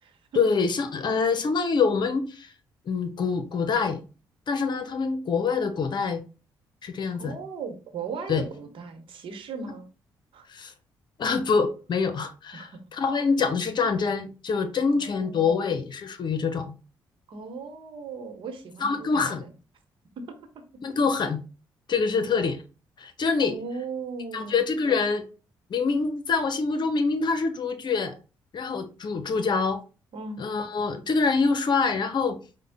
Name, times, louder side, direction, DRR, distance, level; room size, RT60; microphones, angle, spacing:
voice 1, 0.3-2.5 2.8-4.0 4.5-6.2 6.8-7.3 8.3-8.4 10.5-10.7 11.2-16.7 18.8-19.4 20.8-21.4 21.9-22.6 23.0-23.5 24.3-25.2 25.7-28.1 28.5-29.8 30.4-32.4, left 5 dB, 55° left, 0.9 m, -25 dB
voice 2, 7.2-9.9 10.3-10.5 12.5-12.7 14.9-15.7 17.3-19.5 20.2-20.3 23.4-24.6 30.1-30.4, right 4 dB, 65° right, 1.0 m, -37 dB
5.1 x 2.3 x 3.5 m
supercardioid pair, 60°, 9 cm